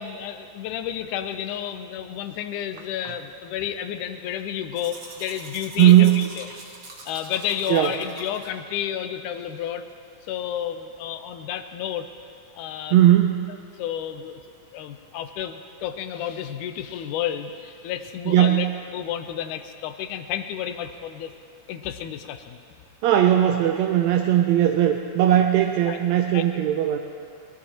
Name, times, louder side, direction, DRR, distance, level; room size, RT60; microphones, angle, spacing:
voice 1, 0.0-6.5 7.1-9.9 10.3-12.1 12.6-13.0 13.8-14.4 14.7-18.7 18.9-21.3 21.7-22.6 25.9-26.0 26.3-26.6, left 10 dB, 90° left, 8 dB, 2.2 m, -31 dB
Domestic sounds home sounds, 4.8-8.5, right 3 dB, 50° right, 1.0 m, -43 dB
voice 2, 5.8-6.1 7.7-7.9 12.9-13.4 18.3-18.6 23.0-27.0, right 12 dB, 80° right, 4 dB, 1.8 m, -18 dB
19.5 x 19.0 x 2.9 m, 2.3 s
omnidirectional pair, 3.5 m